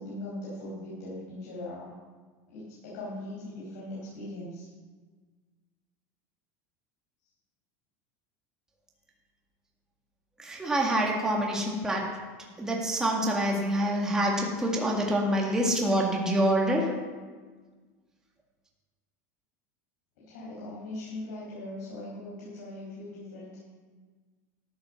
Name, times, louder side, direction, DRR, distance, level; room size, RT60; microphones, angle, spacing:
voice 1, 0.0-1.9 2.5-4.7 20.2-23.6, left 1 dB, 90° left, -6 dB, 5.0 m, -40 dB
voice 2, 10.4-12.1 12.6-16.9, right 1 dB, 5° right, -2 dB, 1.8 m, -26 dB
14.0 x 8.9 x 6.2 m, 1.4 s
supercardioid pair, 170°, 9 cm